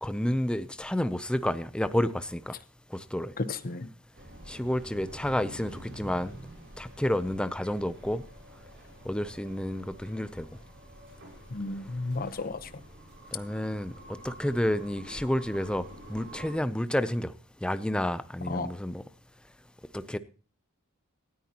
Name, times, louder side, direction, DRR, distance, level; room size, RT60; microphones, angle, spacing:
voice 1, 0.0-2.5 2.9-3.3 4.5-6.3 6.8-8.2 9.0-10.5 13.3-17.3 17.6-19.0 19.9-20.2, left 1 dB, 5° left, 13 dB, 0.5 m, -30 dB
voice 2, 3.4-3.9 11.5-12.7 18.5-18.7, left 3 dB, 40° left, 12 dB, 0.9 m, -33 dB
sound 1, 4.1-16.5, right 1 dB, 50° right, 7.4 m, -48 dB
18.0 x 13.5 x 2.9 m, 0.37 s
head